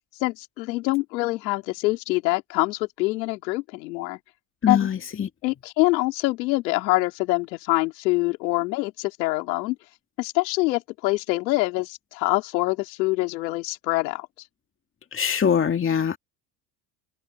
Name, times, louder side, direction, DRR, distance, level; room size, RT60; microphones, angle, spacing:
voice 1, 0.2-4.2 4.7-4.9 5.4-9.8 10.2-14.3, left 22 dB, 90° left, 4.0 m, -25 dB
voice 2, 4.6-5.3 15.1-16.2, left 7 dB, 25° left, 2.1 m, -23 dB
supercardioid pair, 110°, 49 cm